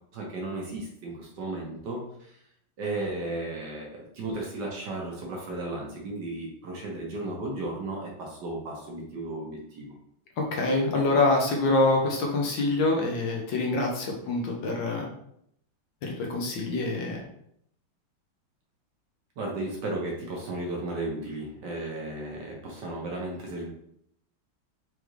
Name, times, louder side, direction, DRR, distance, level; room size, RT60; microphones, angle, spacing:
voice 1, 0.1-2.3 2.8-9.9 19.4-23.7, right 2 dB, 60° right, -1 dB, 1.4 m, -34 dB
voice 2, 10.4-15.1 16.0-17.2, left 2 dB, 65° left, 0 dB, 1.5 m, -25 dB
5.0 x 3.3 x 3.1 m, 0.71 s
omnidirectional pair, 2.3 m